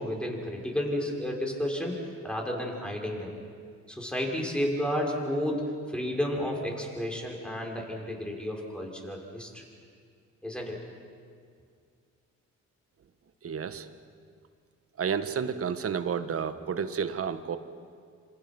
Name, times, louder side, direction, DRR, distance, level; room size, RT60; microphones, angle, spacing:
voice 1, 0.0-2.0 2.2-3.3 3.9-9.6 10.4-10.8, equal, 5° left, -1 dB, 6.0 m, -32 dB
voice 2, 13.4-13.9 15.0-17.6, right 7 dB, 50° right, 10 dB, 1.5 m, -31 dB
27.5 x 27.0 x 6.2 m, 2.1 s
cardioid pair, 90°, 30 cm